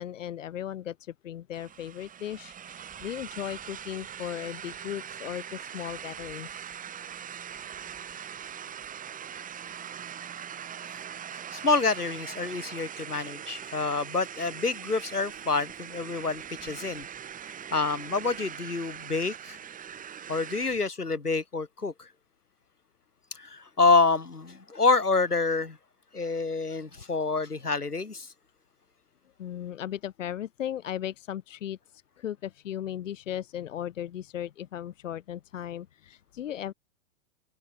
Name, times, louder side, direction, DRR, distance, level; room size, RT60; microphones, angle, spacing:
voice 1, 0.0-6.6 29.4-36.7, left 10 dB, 55° left, 1.1 m, -37 dB
sound 1, 1.5-20.8, right 8 dB, 20° right, 6.3 m, -41 dB
voice 2, 11.3-17.1 17.7-19.6 20.3-22.1 23.3-25.8 26.1-28.3, left 3 dB, 85° left, 1.7 m, -27 dB
open air
figure-of-eight pair, 105°, 44 cm